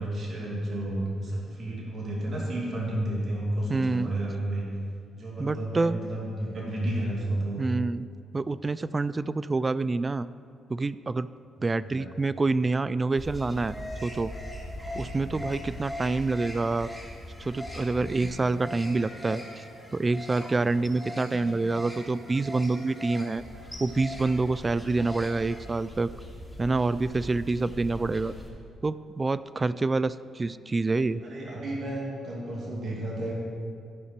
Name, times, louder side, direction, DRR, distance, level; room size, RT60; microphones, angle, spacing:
voice 1, 0.0-4.7 5.1-7.7 11.9-12.1 27.9-28.4 31.2-33.3, right 1 dB, 50° right, -4 dB, 2.5 m, -32 dB
voice 2, 3.7-4.1 5.4-6.0 7.6-8.1 8.3-10.3 10.7-11.3 11.6-13.8 14.0-14.3 15.0-16.9 17.4-19.6 19.9-23.4 23.8-26.1 26.6-28.3 28.8-31.2, right 3 dB, 30° right, 16 dB, 0.3 m, -27 dB
sound 1, 13.2-28.5, left 1 dB, ahead, 2.7 m, -40 dB
14.5 x 5.7 x 4.5 m, 2.3 s
cardioid pair, 75°, 0 cm